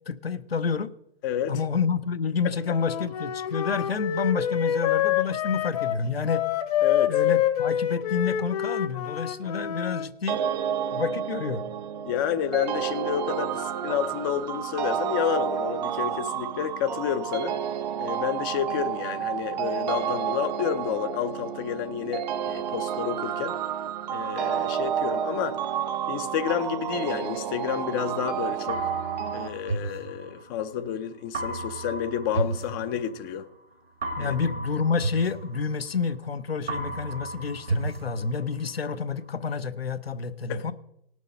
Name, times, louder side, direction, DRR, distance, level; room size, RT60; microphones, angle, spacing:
voice 1, 0.1-0.9 1.5-6.4 7.1-10.4 10.9-11.6 34.2-40.7, left 5 dB, 75° left, 0.8 m, -29 dB
voice 2, 1.2-1.5 6.8-7.2 12.1-17.6 18.0-23.6 24.1-25.6 26.1-28.8 29.3-33.5 34.2-34.3 40.5-40.7, left 9 dB, 20° left, 0.5 m, -30 dB
Wind instrument woodwind instrument, 2.7-10.1, left 11 dB, 40° left, 1.0 m, -27 dB
sound 1, 10.3-29.5, right 9 dB, 45° right, 0.8 m, -30 dB
sound 2, 28.7-30.8 31.3-33.4 34.0-36.3 36.7-38.8, right 2 dB, 80° right, 1.9 m, -33 dB
18.0 x 6.4 x 5.3 m
figure-of-eight pair, 120°, 30 cm